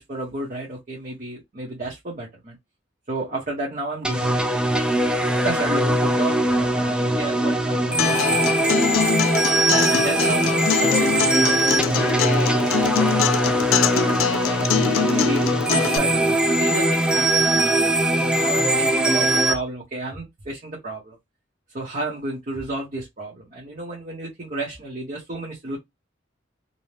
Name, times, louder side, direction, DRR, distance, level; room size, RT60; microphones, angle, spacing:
voice 1, 0.0-2.6 3.1-4.4 5.4-8.7 9.7-10.4 10.8-14.5 14.9-21.2 21.7-25.8, right 2 dB, 40° right, 0.9 m, -32 dB
sound 1, 4.0-19.5, right 1 dB, 5° right, 0.3 m, -21 dB
Acoustic guitar, 8.0-16.0, left 9 dB, 85° left, 0.3 m, -24 dB
2.7 x 2.1 x 3.1 m
head